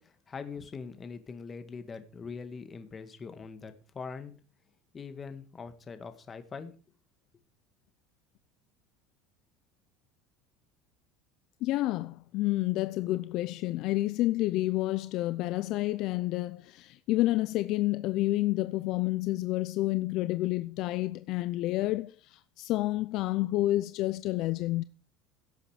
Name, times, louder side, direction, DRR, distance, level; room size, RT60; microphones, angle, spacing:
voice 1, 0.0-4.3 4.9-6.8, left 5 dB, 20° left, 1.8 m, -42 dB
voice 2, 11.6-24.8, left 17 dB, 50° left, 0.6 m, -29 dB
16.5 x 8.2 x 5.0 m
cardioid pair, 150°, 0 cm